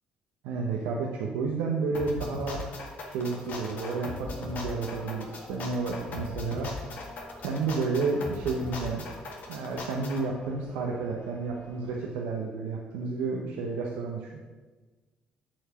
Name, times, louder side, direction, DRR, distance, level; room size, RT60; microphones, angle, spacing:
voice 1, 0.4-2.6 3.1-6.7 7.4-9.0 9.5-14.3, right 4 dB, 85° right, -1 dB, 0.8 m, -31 dB
sound 1, 1.9-10.2, left 3 dB, 60° left, 1.5 m, -39 dB
sound 2, 3.3-12.0, left 2 dB, 30° left, 1.0 m, -49 dB
7.4 x 4.6 x 5.0 m, 1.3 s
supercardioid pair, 70°, 3 cm